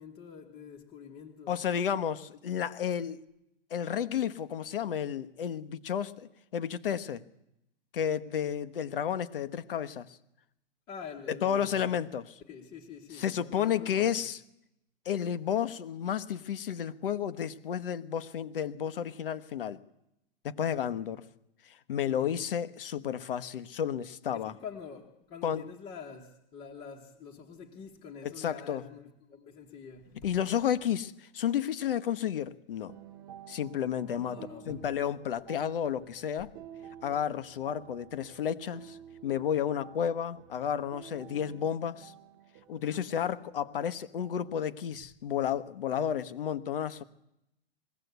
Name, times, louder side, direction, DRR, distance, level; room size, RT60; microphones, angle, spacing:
voice 1, 0.0-1.5 10.9-11.9 12.5-14.3 22.1-22.5 24.3-30.1 34.2-35.0, left 6 dB, 15° left, 1.2 m, -46 dB
voice 2, 1.5-3.2 3.7-7.2 7.9-10.1 11.3-12.4 13.2-14.4 15.0-19.8 20.4-21.2 21.9-24.5 25.4-25.7 28.2-28.8 30.2-32.9 33.5-34.4 34.7-36.5 37.0-39.0 39.2-42.1 42.7-47.0, left 9 dB, 65° left, 1.2 m, -32 dB
sound 1, 32.9-44.6, right 9 dB, 25° right, 0.8 m, -52 dB
21.5 x 16.5 x 8.1 m
hypercardioid pair, 175°, 30 cm